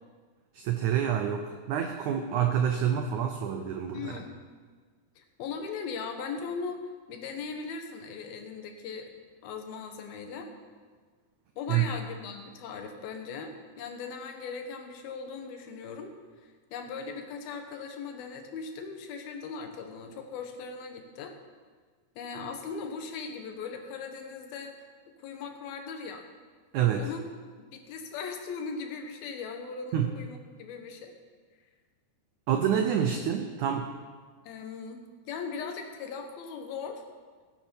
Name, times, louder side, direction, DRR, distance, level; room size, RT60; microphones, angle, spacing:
voice 1, 0.5-4.2 11.7-11.9 26.7-27.1 29.9-30.1 32.5-34.0, right 9 dB, 85° right, 5 dB, 1.7 m, -27 dB
voice 2, 3.9-4.4 5.2-6.8 7.1-9.1 9.4-10.5 11.6-16.1 16.4-21.3 22.2-24.8 25.2-26.3 26.9-27.3 27.6-31.1 34.4-37.0, left 5 dB, 75° left, 4 dB, 3.0 m, -39 dB
17.0 x 9.0 x 5.3 m, 1.5 s
omnidirectional pair, 4.4 m